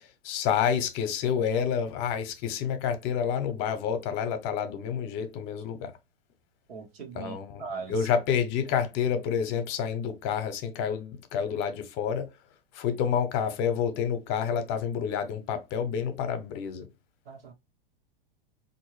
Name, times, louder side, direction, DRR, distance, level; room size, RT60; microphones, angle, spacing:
voice 1, 0.2-5.9 7.2-7.6 7.9-12.3 12.7-16.9, left 7 dB, 40° left, 0.8 m, -29 dB
voice 2, 6.7-7.9 17.3-17.5, right 5 dB, 80° right, 1.3 m, -39 dB
3.7 x 2.7 x 3.1 m
hypercardioid pair, 130°, 29 cm